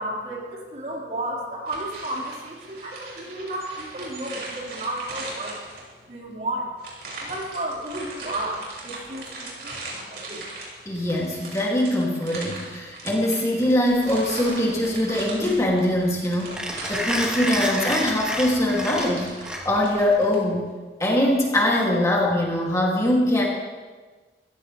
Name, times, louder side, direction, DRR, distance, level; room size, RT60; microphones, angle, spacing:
voice 1, 0.0-5.5 6.1-6.7 7.2-10.4, right 1 dB, 45° right, -4 dB, 4.8 m, -32 dB
sound 1, 1.7-6.1 6.8-20.4, right 2 dB, 60° right, 6.2 m, -39 dB
voice 2, 10.9-19.3 19.6-20.6 21.0-23.4, left 1 dB, 20° left, -3 dB, 2.7 m, -22 dB
Mechanisms, 13.9-20.0, equal, 5° right, 2.9 m, -30 dB
26.0 x 16.5 x 3.4 m, 1.4 s
head